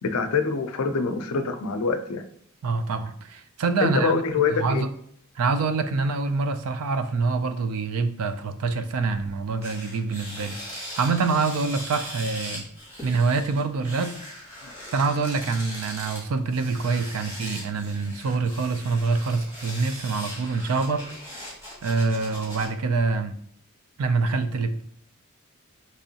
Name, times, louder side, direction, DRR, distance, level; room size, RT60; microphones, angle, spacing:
voice 1, 0.0-2.2 3.8-4.8, left 4 dB, 80° left, 8 dB, 0.4 m, -25 dB
voice 2, 2.6-4.1 4.6-4.9 5.4-12.6 13.0-14.2 14.9-21.1 21.3-21.4 21.8-23.3 24.0-24.8, right 4 dB, 75° right, 10 dB, 0.4 m, -25 dB
sound 1, 9.2-9.3 9.6-22.7, equal, 10° right, 1.4 m, -40 dB
3.6 x 3.0 x 2.8 m, 0.65 s
head